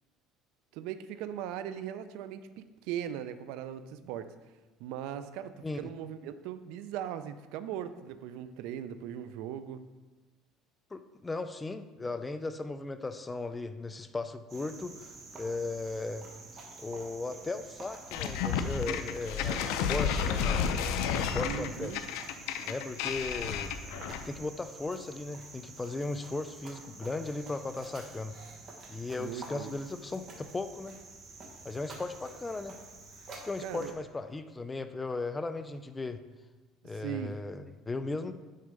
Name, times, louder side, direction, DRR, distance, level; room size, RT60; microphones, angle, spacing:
voice 1, 0.7-4.3 4.8-9.8 21.5-22.0 29.2-29.7 33.6-33.9 36.8-37.4, right 10 dB, 75° right, 12 dB, 0.4 m, -39 dB
voice 2, 10.9-16.3 16.8-21.9 22.7-23.7 24.1-28.4 28.9-31.0 31.6-32.8 33.4-36.2 36.8-38.3, left 3 dB, 15° left, 10 dB, 0.3 m, -37 dB
Cricket, 14.5-33.9, right 3 dB, 35° right, 1.1 m, -49 dB
sound 1, 18.1-24.4, left 7 dB, 80° left, 0.5 m, -31 dB
6.5 x 4.5 x 5.2 m, 1.2 s
cardioid pair, 145°, 0 cm